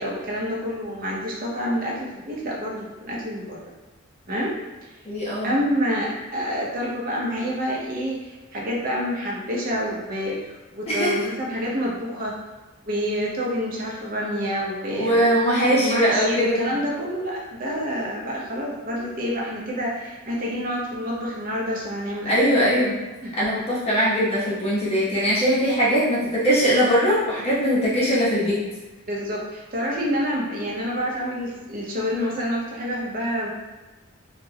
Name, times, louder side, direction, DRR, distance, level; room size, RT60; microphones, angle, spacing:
voice 1, 0.0-3.7 4.3-4.6 4.8-4.9 5.4-12.4 12.8-22.4 22.7-22.8 23.2-23.3 29.1-33.5, equal, 40° right, -3 dB, 0.5 m, -28 dB
voice 2, 5.1-5.5 10.9-11.1 14.9-16.6 22.3-23.0 23.4-28.6, equal, 30° left, -8 dB, 0.6 m, -21 dB
2.2 x 2.0 x 3.2 m, 1.2 s
head